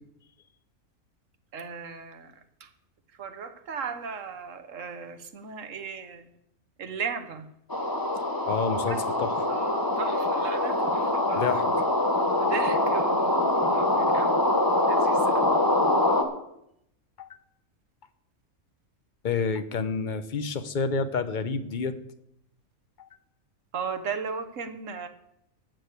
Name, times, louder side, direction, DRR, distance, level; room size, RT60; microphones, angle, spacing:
voice 1, 1.5-2.7 3.2-6.3 6.8-7.5 8.9-9.0 9.5-11.6 12.3-14.4 14.8-15.6 23.7-25.1, right 6 dB, 65° right, 9 dB, 1.4 m, -36 dB
sound 1, 7.7-16.2, left 1 dB, 15° left, 1.2 m, -24 dB
voice 2, 8.5-9.3 11.3-11.6 17.2-17.3 19.2-22.0 23.0-23.1, left 5 dB, 45° left, 12 dB, 0.8 m, -29 dB
12.5 x 6.5 x 8.1 m, 0.77 s
omnidirectional pair, 1.5 m